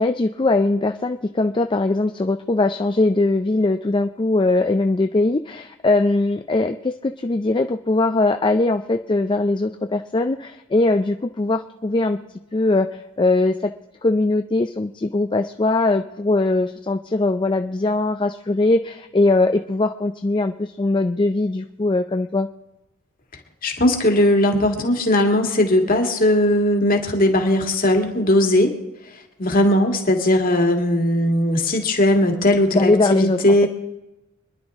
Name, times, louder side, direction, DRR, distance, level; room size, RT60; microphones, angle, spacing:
voice 1, 0.0-12.2 12.5-13.7 14.0-22.5 32.7-33.7, left 2 dB, 25° left, 7 dB, 0.4 m, -21 dB
voice 2, 23.6-28.8 29.4-33.7, left 1 dB, 45° left, 3 dB, 1.9 m, -18 dB
26.0 x 10.5 x 3.6 m, 0.97 s
head